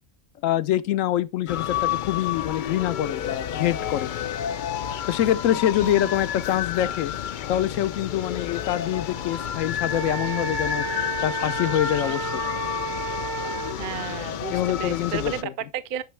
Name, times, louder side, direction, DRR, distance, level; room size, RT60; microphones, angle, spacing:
voice 1, 0.4-4.1 5.1-7.1 7.5-10.8 11.2-12.4 14.5-15.5, left 12 dB, 85° left, 1.0 m, -25 dB
sound 1, 1.5-15.4, left 10 dB, 70° left, 0.4 m, -30 dB
voice 2, 5.8-6.1 13.8-16.0, right 9 dB, 55° right, 0.6 m, -33 dB
Wind instrument woodwind instrument, 9.9-13.8, right 4 dB, 75° right, 1.6 m, -31 dB
9.4 x 5.7 x 3.2 m
omnidirectional pair, 1.3 m